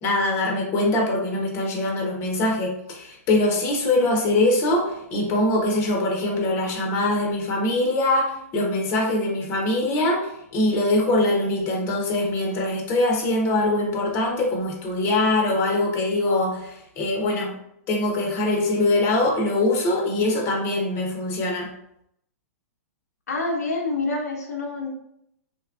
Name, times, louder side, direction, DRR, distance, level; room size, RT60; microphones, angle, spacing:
voice 1, 0.0-17.6 17.9-21.7, left 2 dB, 30° left, 0 dB, 0.7 m, -23 dB
voice 2, 23.3-24.9, left 3 dB, 80° left, 0 dB, 0.6 m, -27 dB
2.9 x 2.2 x 2.3 m, 0.77 s
hypercardioid pair, 115°, 8 cm